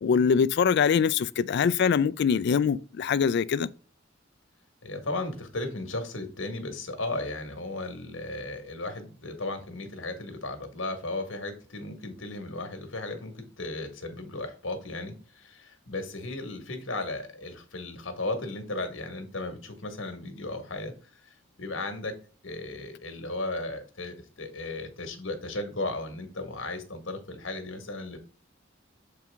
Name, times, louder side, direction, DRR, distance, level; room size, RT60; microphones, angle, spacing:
voice 1, 0.0-3.7, left 6 dB, 60° left, 0.3 m, -23 dB
voice 2, 4.8-21.3 21.6-22.1 22.4-28.2, left 2 dB, 75° left, 1.6 m, -35 dB
6.9 x 4.6 x 3.5 m
head